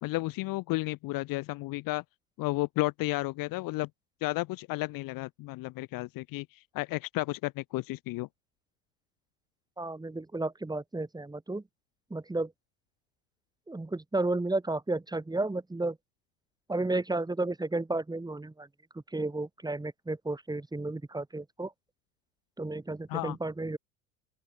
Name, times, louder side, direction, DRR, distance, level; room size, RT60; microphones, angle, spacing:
voice 1, 0.0-2.0 2.4-3.9 4.2-6.5 6.7-8.3 23.1-23.4, left 21 dB, 50° left, 1.4 m, -32 dB
voice 2, 9.8-11.6 12.1-12.5 13.7-16.0 16.7-18.7 19.1-21.7 22.6-23.8, right 2 dB, 10° right, 4.4 m, -32 dB
open air
hypercardioid pair, 90°, 43 cm